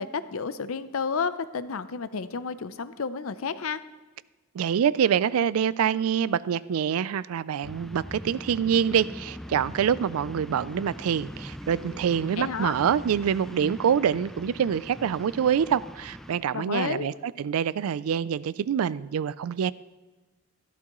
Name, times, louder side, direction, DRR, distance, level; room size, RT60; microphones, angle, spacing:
voice 1, 0.0-3.8 12.4-12.8 16.5-17.1, left 5 dB, 75° left, 0.6 m, -31 dB
voice 2, 4.5-19.7, right 8 dB, 85° right, 0.3 m, -25 dB
sound 1, 7.6-16.4, equal, ahead, 0.3 m, -41 dB
14.0 x 12.0 x 3.0 m
head